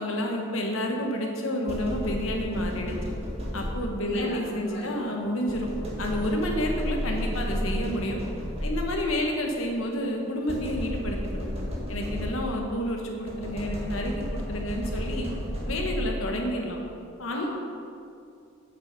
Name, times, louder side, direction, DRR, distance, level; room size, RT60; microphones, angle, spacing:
voice 1, 0.0-2.9 3.5-5.7 6.0-8.2 8.6-11.5 11.9-15.3 15.7-16.8 17.2-17.4, left 1 dB, 90° left, 1 dB, 1.3 m, -30 dB
sound 1, 1.7-4.1 5.5-9.1 10.5-12.7 13.3-16.3, equal, 30° right, 1.8 m, -32 dB
voice 2, 4.0-4.9 17.3-17.5, left 2 dB, 60° left, -6 dB, 2.1 m, -36 dB
8.0 x 6.2 x 6.0 m, 2.4 s
head